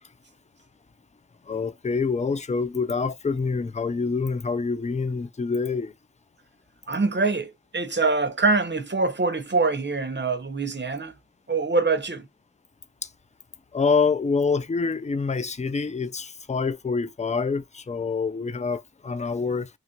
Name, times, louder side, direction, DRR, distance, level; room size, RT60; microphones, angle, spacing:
voice 1, 1.5-5.9 13.7-19.7, left 4 dB, 25° left, 0.4 m, -26 dB
voice 2, 6.9-11.1 11.5-12.3, right 3 dB, 35° right, 0.7 m, -24 dB
3.0 x 2.4 x 4.3 m
wide cardioid pair, 50°, 31 cm